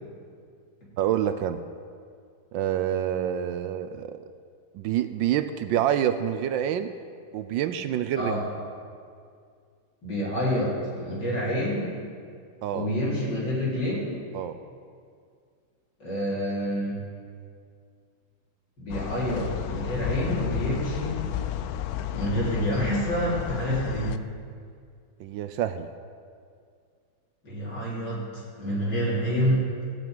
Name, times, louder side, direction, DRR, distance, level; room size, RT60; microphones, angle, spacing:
voice 1, 1.0-1.6 2.5-4.2 4.7-6.9 7.3-8.3 12.6-12.9 14.3-14.6 25.2-25.9, right 10 dB, 75° right, 10 dB, 1.2 m, -27 dB
voice 2, 10.0-11.9 12.7-14.1 16.0-17.0 18.8-21.3 22.1-24.2 27.4-29.7, equal, 60° left, -7 dB, 4.2 m, -28 dB
sound 1, 18.9-24.2, left 11 dB, 90° left, 0.8 m, -32 dB
15.5 x 5.9 x 9.0 m, 2.2 s
omnidirectional pair, 2.2 m